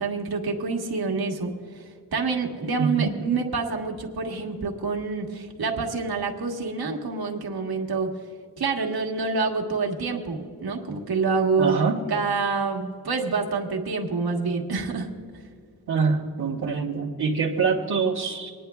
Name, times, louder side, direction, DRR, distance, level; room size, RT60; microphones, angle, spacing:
voice 1, 0.0-1.8 2.1-8.1 8.6-11.8 12.1-15.1, right 4 dB, 70° right, 1 dB, 1.5 m, -27 dB
voice 2, 2.8-3.1 11.6-12.0 15.9-18.5, right 5 dB, 90° right, -5 dB, 1.1 m, -25 dB
26.0 x 10.0 x 2.3 m, 2.2 s
wide cardioid pair, 85°, 38 cm